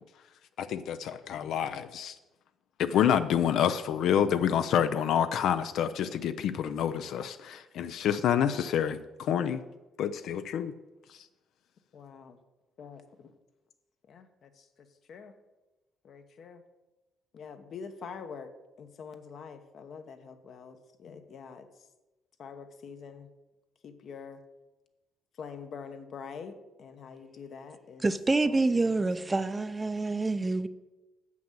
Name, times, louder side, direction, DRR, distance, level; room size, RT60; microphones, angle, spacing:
voice 1, 0.6-2.2 2.8-9.6 10.0-10.7 11.1-11.2, left 9 dB, 75° left, 11 dB, 0.4 m, -28 dB
voice 2, 11.9-12.4 12.8-13.3 14.1-15.3 16.0-16.6 17.3-18.5 18.8-21.9 22.4-23.3 23.8-24.4 25.3-28.1 28.4-29.3, left 6 dB, 55° left, 8 dB, 1.0 m, -45 dB
voice 3, 28.0-30.7, right 3 dB, 20° right, 12 dB, 0.5 m, -27 dB
7.4 x 6.0 x 7.3 m, 1.1 s
cardioid pair, 105°, 0 cm